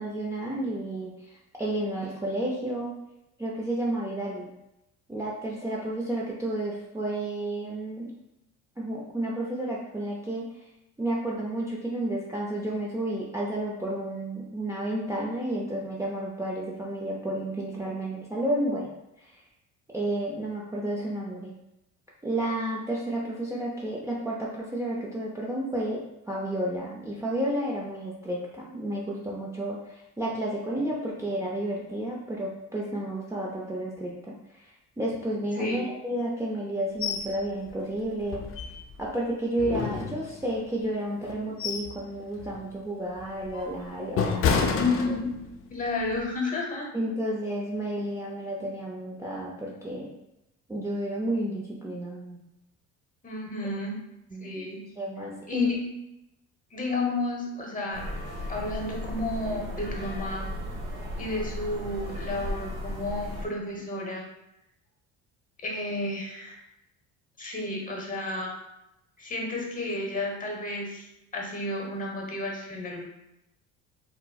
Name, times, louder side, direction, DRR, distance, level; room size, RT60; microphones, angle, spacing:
voice 1, 0.0-3.0 3.4-4.5 5.1-8.1 8.8-10.6 11.0-18.9 19.2-19.4 19.9-21.6 22.2-38.4 39.0-45.0 46.9-50.1 50.7-52.4 54.3-54.6 55.0-55.7, right 1 dB, 10° right, -4 dB, 0.5 m, -31 dB
voice 2, 35.6-35.9 44.7-45.4 45.7-46.9 53.2-54.0 54.4-54.8 55.5-55.9 56.7-58.0 58.5-60.5 61.2-64.2 65.6-66.6 67.4-68.5 69.2-71.1 71.3-73.0, left 2 dB, 25° left, 0 dB, 0.9 m, -31 dB
sound 1, 37.0-37.3 37.7-37.8 38.3-39.1 39.6-40.6 41.2-42.0 42.4-42.6 43.2-45.6 46.0-46.2, left 5 dB, 45° left, 0.5 m, -29 dB
sound 2, 57.9-63.5, equal, 60° right, 1.2 m, -35 dB
4.3 x 2.1 x 2.3 m, 0.89 s
supercardioid pair, 85°, 32 cm